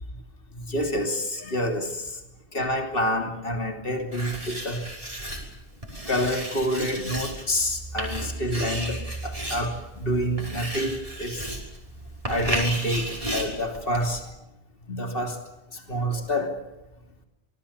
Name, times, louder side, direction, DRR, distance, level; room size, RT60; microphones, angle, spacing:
voice 1, 0.5-2.2 2.5-4.9 6.1-11.6 12.3-14.3 14.9-16.6, equal, 60° left, 3.2 m, -28 dB
Writing, 4.1-14.3, right 1 dB, 35° right, 5.9 m, -34 dB
27.0 x 20.5 x 7.3 m
omnidirectional pair, 1.1 m